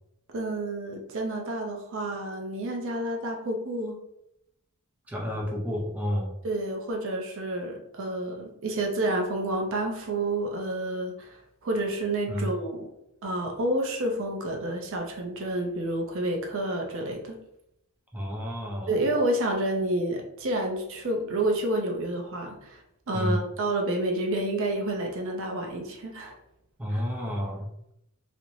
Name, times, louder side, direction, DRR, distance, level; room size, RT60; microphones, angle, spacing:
voice 1, 0.3-4.0 6.4-12.9 13.2-17.4 18.9-26.4 26.9-27.0, right 1 dB, 65° right, 2 dB, 0.5 m, -29 dB
voice 2, 5.1-6.3 12.3-12.5 18.1-18.9 23.1-23.4 26.8-27.7, equal, 5° right, -3 dB, 0.5 m, -30 dB
2.4 x 2.0 x 3.0 m, 0.81 s
head